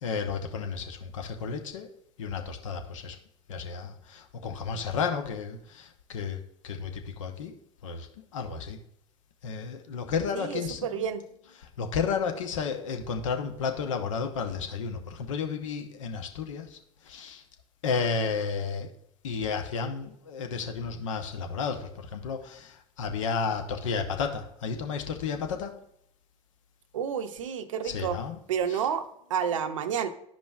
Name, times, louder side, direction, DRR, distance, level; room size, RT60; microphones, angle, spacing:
voice 1, 0.0-1.9 2.2-3.2 3.5-7.5 7.8-8.1 8.3-8.8 9.4-11.1 11.6-16.8 17.0-17.4 17.8-18.9 19.2-25.7 27.8-28.4, left 5 dB, 80° left, 5 dB, 0.8 m, -32 dB
voice 2, 10.3-11.3 26.9-28.2 28.5-30.1, right 7 dB, 80° right, 10 dB, 0.6 m, -30 dB
12.0 x 5.1 x 2.4 m, 0.72 s
hypercardioid pair, 70°, 16 cm